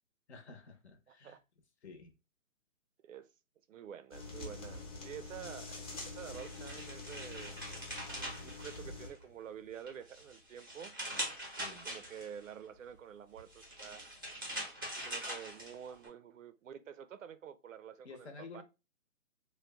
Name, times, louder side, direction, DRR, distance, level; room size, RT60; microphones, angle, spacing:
voice 1, 0.3-1.4 1.8-2.1 11.6-11.9 18.0-18.6, left 4 dB, 55° left, 0.9 m, -51 dB
voice 2, 1.1-1.4 3.0-3.3 3.7-7.5 8.1-10.9 11.7-14.1 15.0-18.6, right 8 dB, 70° right, 0.5 m, -49 dB
sound 1, 4.1-9.1, left 3 dB, 25° left, 0.8 m, -46 dB
sound 2, 6.0-9.3 9.7-12.5 13.4-16.1, right 1 dB, 15° right, 0.5 m, -43 dB
3.1 x 2.2 x 3.3 m
hypercardioid pair, 170°, 40 cm